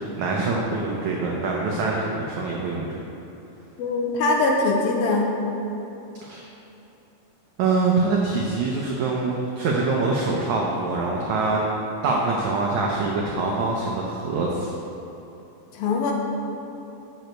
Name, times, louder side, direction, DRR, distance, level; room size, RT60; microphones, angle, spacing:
voice 1, 0.0-2.9 6.2-6.4 7.6-11.6 12.0-14.7, right 3 dB, 90° right, -2 dB, 1.6 m, -24 dB
voice 2, 3.8-5.3 15.7-16.1, left 3 dB, 75° left, 1 dB, 2.5 m, -22 dB
12.0 x 7.8 x 4.5 m, 3.0 s
omnidirectional pair, 4.6 m